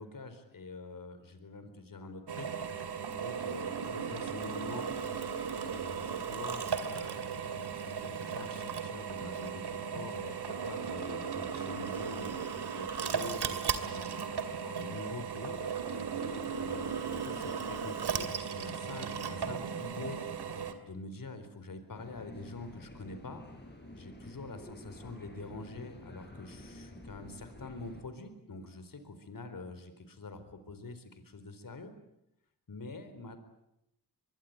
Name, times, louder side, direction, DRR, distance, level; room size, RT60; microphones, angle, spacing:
voice 1, 0.0-2.5 3.1-4.9 5.6-15.6 16.5-20.2 20.8-23.4 23.9-31.9 32.7-33.4, left 3 dB, 55° left, 10 dB, 4.3 m, -46 dB
Drill, 2.3-20.7, right 6 dB, 85° right, 2.7 m, -36 dB
sound 1, 21.9-28.0, left 1 dB, 25° left, 7.3 m, -50 dB
24.0 x 23.0 x 9.5 m, 0.81 s
wide cardioid pair, 80°, 39 cm